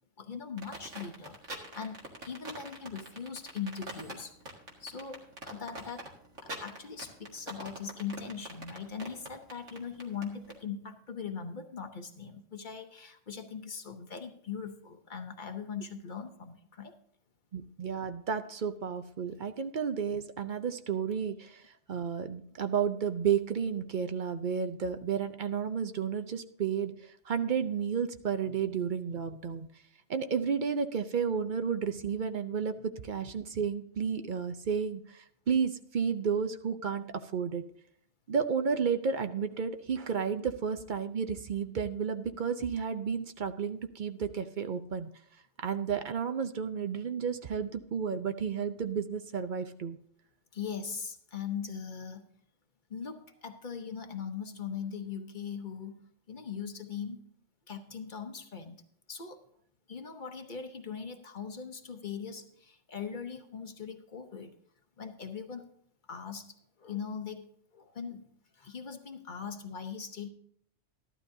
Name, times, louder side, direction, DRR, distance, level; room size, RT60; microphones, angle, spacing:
voice 1, 0.2-4.4 4.8-6.1 6.4-16.9 28.4-28.6 50.5-52.3 52.9-57.2 57.7-58.8 59.1-59.4 59.9-64.5 65.0-65.7 66.1-68.2 68.5-70.3, left 6 dB, 45° left, 7 dB, 0.8 m, -40 dB
sound 1, 0.6-10.6, right 1 dB, 75° right, 2.2 m, -43 dB
voice 2, 17.5-29.7 30.1-37.0 37.3-37.6 38.3-45.1 45.6-50.0, right 6 dB, 50° right, 9 dB, 0.6 m, -32 dB
14.0 x 12.0 x 2.6 m, 0.67 s
omnidirectional pair, 1.3 m